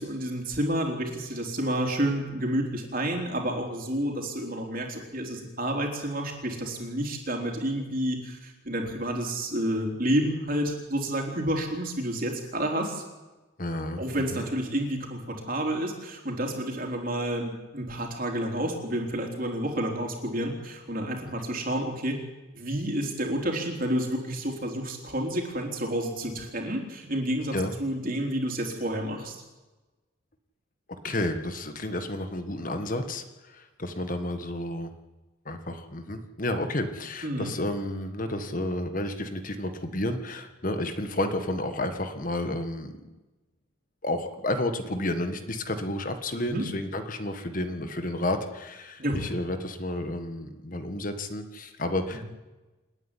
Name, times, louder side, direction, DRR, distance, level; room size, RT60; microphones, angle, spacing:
voice 1, 0.0-13.0 14.0-22.1 22.5-29.4 37.2-37.5 46.4-46.6 49.0-49.3 52.1-52.2, right 1 dB, 45° right, 2 dB, 3.9 m, -30 dB
voice 2, 13.6-14.5 27.5-27.7 31.0-34.9 35.4-42.9 44.0-52.2, left 1 dB, 45° left, 8 dB, 1.6 m, -31 dB
28.0 x 9.8 x 10.0 m, 1.1 s
head